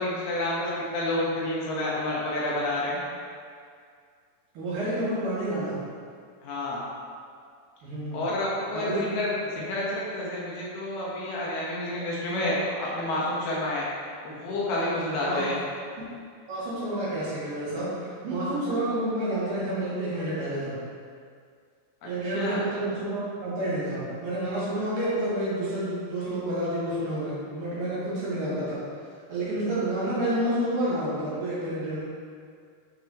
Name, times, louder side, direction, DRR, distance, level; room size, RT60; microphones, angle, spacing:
voice 1, 0.0-3.0 6.4-6.8 8.1-9.3 9.5-13.9 14.2-15.6 22.4-22.6, left 1 dB, 75° left, -6 dB, 3.0 m, -29 dB
voice 2, 4.5-5.8 7.8-8.2 8.7-9.0 15.2-15.4 16.5-20.8 22.0-28.8 29.3-32.0, right 1 dB, 60° right, -10 dB, 3.3 m, -29 dB
8.8 x 5.5 x 3.0 m, 2.2 s
omnidirectional pair, 4.8 m